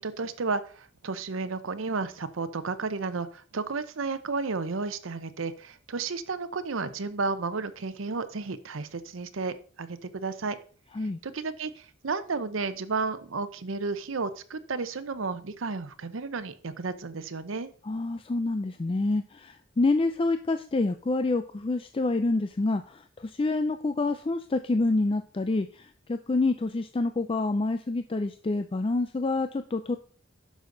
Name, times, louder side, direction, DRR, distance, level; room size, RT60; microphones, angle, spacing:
voice 1, 0.0-10.6 11.2-17.7, right 4 dB, 85° right, 12 dB, 0.8 m, -32 dB
voice 2, 17.8-30.0, left 2 dB, 25° left, 9 dB, 0.4 m, -27 dB
10.5 x 6.3 x 3.9 m, 0.41 s
head